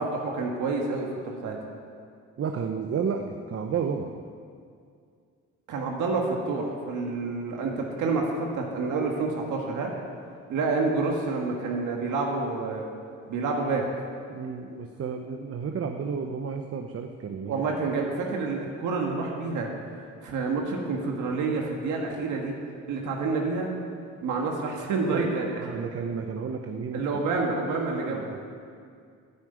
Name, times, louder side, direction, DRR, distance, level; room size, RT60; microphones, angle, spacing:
voice 1, 0.0-1.6 5.7-9.9 10.5-12.9 13.3-13.8 17.5-19.7 20.2-22.5 22.9-23.7 24.2-25.5 26.9-28.3, right 3 dB, 80° right, 0 dB, 1.8 m, -28 dB
voice 2, 2.4-4.1 14.3-17.6 25.1-27.1 28.0-28.4, right 6 dB, 50° right, 5 dB, 0.9 m, -32 dB
9.9 x 9.4 x 9.1 m, 2.3 s
cardioid pair, 90°, 30 cm